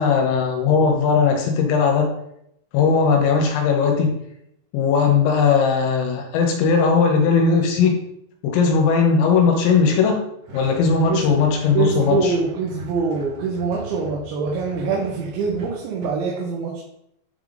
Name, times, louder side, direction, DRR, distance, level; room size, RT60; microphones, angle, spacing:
voice 1, 0.0-2.1 2.7-4.1 4.7-8.0 8.4-10.2 10.5-12.3, left 5 dB, 80° left, 2 dB, 3.0 m, -18 dB
freezer metal rattle banging from inside, 10.4-16.1, right 2 dB, 60° right, 2.2 m, -40 dB
voice 2, 11.7-16.8, right 4 dB, 75° right, -2 dB, 3.2 m, -24 dB
9.7 x 3.5 x 3.8 m, 0.76 s
omnidirectional pair, 5.6 m